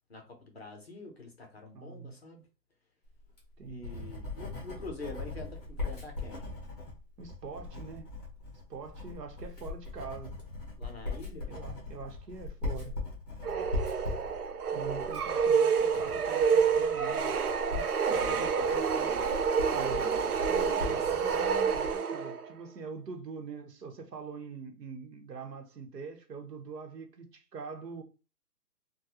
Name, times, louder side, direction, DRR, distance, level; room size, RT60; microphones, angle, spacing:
voice 1, 0.1-2.4 3.7-6.5 10.8-11.5 18.1-19.1 19.9-20.3 20.8-21.0, left 2 dB, 40° left, 0.7 m, -45 dB
voice 2, 1.7-2.1 3.6-4.1 7.2-8.1 8.7-10.3 11.5-13.0 14.7-17.3 19.7-20.1 20.5-28.0, right 5 dB, 85° right, 1.0 m, -43 dB
Writing, 3.2-22.0, left 3 dB, 25° left, 1.1 m, -40 dB
sound 1, 13.4-22.5, right 6 dB, 65° right, 0.6 m, -28 dB
3.6 x 2.2 x 2.9 m
hypercardioid pair, 175°, 48 cm